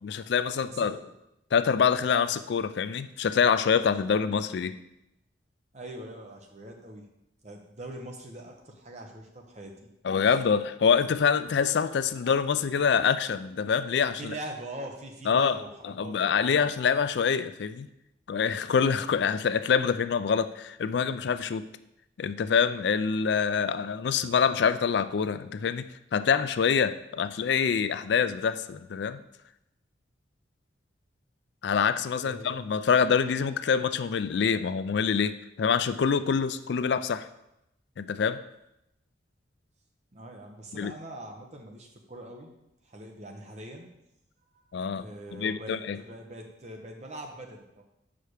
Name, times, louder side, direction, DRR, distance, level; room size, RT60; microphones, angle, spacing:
voice 1, 0.0-1.0 1.5-4.8 10.0-14.3 15.3-15.6 15.8-17.9 18.3-21.7 22.2-25.8 26.1-29.2 31.6-37.3 38.0-38.4 40.7-40.9 44.7-45.0 45.3-46.0, left 6 dB, 65° left, 13 dB, 0.3 m, -25 dB
voice 2, 0.7-1.1 5.7-7.1 7.4-9.9 14.2-16.6 32.2-32.6 40.1-42.5 42.8-43.9 44.5-44.6 44.9-47.8, right 1 dB, 35° right, 2 dB, 1.0 m, -43 dB
5.7 x 5.0 x 6.4 m, 0.85 s
head